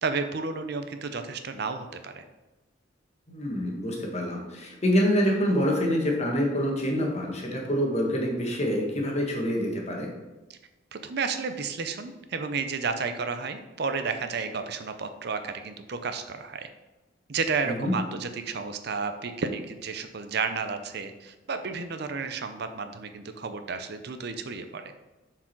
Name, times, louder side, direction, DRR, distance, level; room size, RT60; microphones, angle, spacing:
voice 1, 0.0-2.2 10.5-10.6 10.9-16.7 17.3-24.9, right 5 dB, 60° right, 8 dB, 0.6 m, -32 dB
voice 2, 3.3-10.1 17.6-17.9, equal, 35° left, 0 dB, 1.5 m, -26 dB
7.2 x 4.8 x 4.5 m, 1.1 s
head